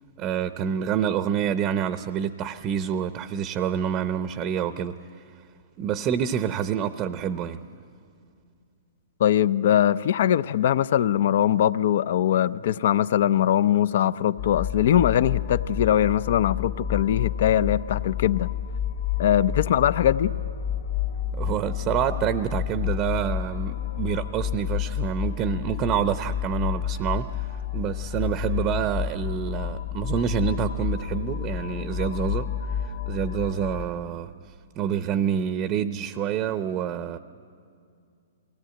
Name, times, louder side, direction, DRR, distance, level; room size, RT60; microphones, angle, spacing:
voice 1, 0.2-5.0 5.8-7.6 21.4-27.5 27.7-32.5 32.8-34.3 34.8-37.2, right 9 dB, 30° right, 0.6 m, -27 dB
voice 2, 9.2-18.5 19.2-20.3, left 10 dB, 60° left, 0.5 m, -21 dB
sound 1, 14.4-33.8, left 9 dB, 80° left, 1.8 m, -30 dB
22.5 x 17.5 x 9.0 m
hypercardioid pair, 135°, 0 cm